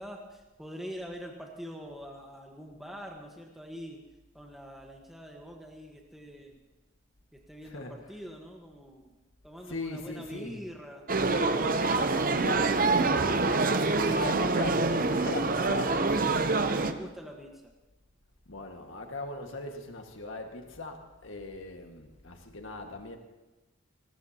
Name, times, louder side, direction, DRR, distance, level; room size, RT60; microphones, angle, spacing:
voice 1, 0.0-4.0 4.3-6.6 7.3-9.1 9.4-11.1 16.7-17.7, equal, ahead, 0 dB, 1.3 m, -44 dB
voice 2, 9.7-10.6 13.9-16.0 18.5-23.2, left 2 dB, 75° left, 3 dB, 1.8 m, -39 dB
sound 1, 11.1-16.9, right 3 dB, 45° right, 0.7 m, -26 dB
21.0 x 19.5 x 2.9 m, 1.1 s
head